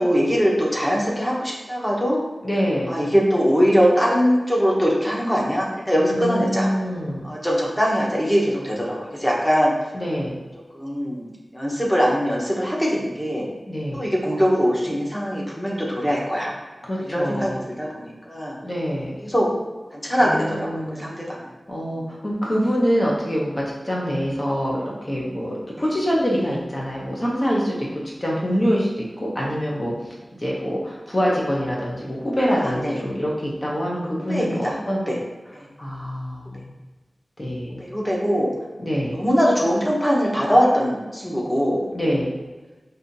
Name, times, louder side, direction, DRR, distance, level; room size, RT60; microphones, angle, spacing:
voice 1, 0.0-2.2 2.9-6.7 7.2-9.7 10.7-11.2 11.5-13.5 13.9-16.5 17.0-18.5 19.2-19.5 19.9-21.4 21.9-22.0 32.6-33.0 34.3-34.8 35.1-35.2 35.5-35.7 37.8-38.5 39.1-41.9, equal, 10° left, -4 dB, 1.0 m, -22 dB
voice 2, 2.4-2.9 6.0-7.2 9.9-10.3 13.7-14.1 16.8-17.6 18.6-19.1 20.2-21.4 21.7-35.0 35.8-36.6 37.4-37.8 38.8-39.2 41.9-42.3, equal, 30° left, -4 dB, 0.7 m, -25 dB
5.4 x 2.6 x 2.6 m, 1.2 s
wide cardioid pair, 85°, 0 cm